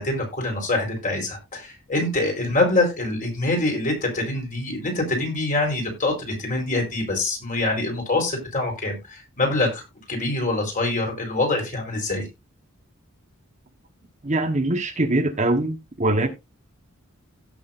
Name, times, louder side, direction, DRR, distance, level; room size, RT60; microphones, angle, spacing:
voice 1, 0.0-9.8 10.1-12.2, left 2 dB, 40° left, 4.4 m, -25 dB
voice 2, 14.2-16.3, right 2 dB, 35° right, 1.2 m, -22 dB
16.5 x 6.3 x 2.6 m
head